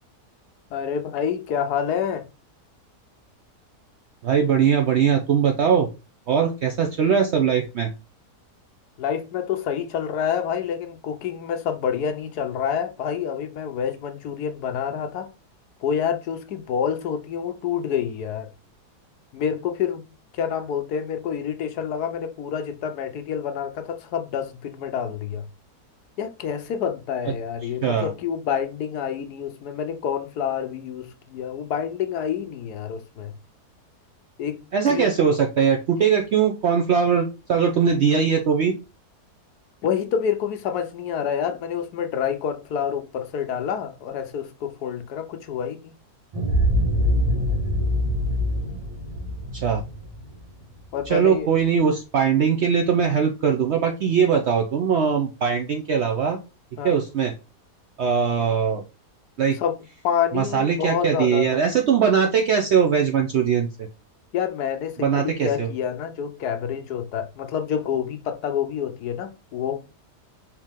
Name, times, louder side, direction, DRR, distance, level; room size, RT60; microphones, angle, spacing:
voice 1, 0.7-2.2 9.0-15.3 15.8-18.5 19.3-20.1 20.3-25.4 26.2-33.3 34.4-34.6 34.9-35.1 39.8-45.9 50.9-51.5 56.8-57.0 59.6-59.8 60.0-61.6 64.3-69.8, left 8 dB, 80° left, 1.2 m, -27 dB
voice 2, 4.2-5.9 6.3-7.9 27.8-28.1 34.7-38.7 49.5-49.8 51.1-56.4 56.8-57.3 58.0-58.8 59.4-59.6 60.3-63.7 65.0-65.7, right 7 dB, 70° right, 0.6 m, -21 dB
sound 1, 46.3-51.1, equal, 20° right, 1.2 m, -24 dB
4.6 x 3.0 x 3.5 m
omnidirectional pair, 1.7 m